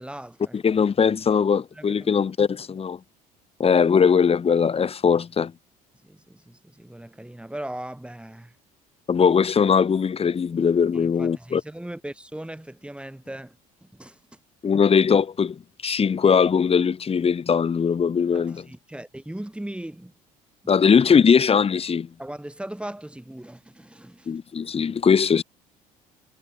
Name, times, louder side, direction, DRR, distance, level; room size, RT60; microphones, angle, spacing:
voice 1, 0.0-0.8 1.7-2.1 6.0-8.5 10.9-14.4 18.3-20.1 20.6-20.7 22.2-24.3, right 1 dB, 5° right, 3.3 m, -39 dB
voice 2, 0.5-3.0 3.6-5.5 9.1-11.6 14.6-18.6 20.7-22.1 24.3-25.4, left 6 dB, 30° left, 1.2 m, -20 dB
hypercardioid pair, 60°, 19 cm